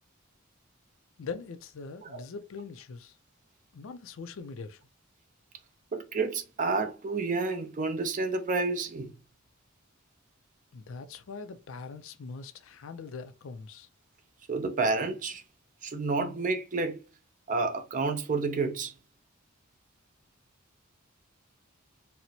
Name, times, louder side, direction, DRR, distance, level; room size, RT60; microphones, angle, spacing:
voice 1, 1.2-3.2 3.7-4.8 10.7-13.9, left 4 dB, 75° left, 0.4 m, -42 dB
voice 2, 5.9-9.1 14.5-15.4 15.8-17.0 17.5-18.9, right 3 dB, 40° right, 0.5 m, -30 dB
4.3 x 2.0 x 2.7 m
head